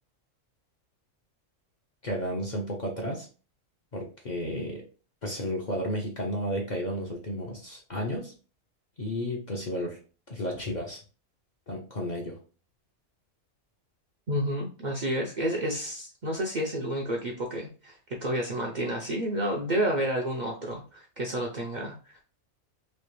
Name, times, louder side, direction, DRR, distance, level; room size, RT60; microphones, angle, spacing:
voice 1, 2.0-3.3 3.9-4.8 5.2-8.3 9.0-10.0 10.3-11.0 11.7-12.4, equal, 45° left, 0 dB, 0.6 m, -32 dB
voice 2, 14.3-22.2, right 1 dB, 50° right, -1 dB, 0.6 m, -30 dB
3.2 x 2.8 x 3.1 m, 0.36 s
omnidirectional pair, 1.3 m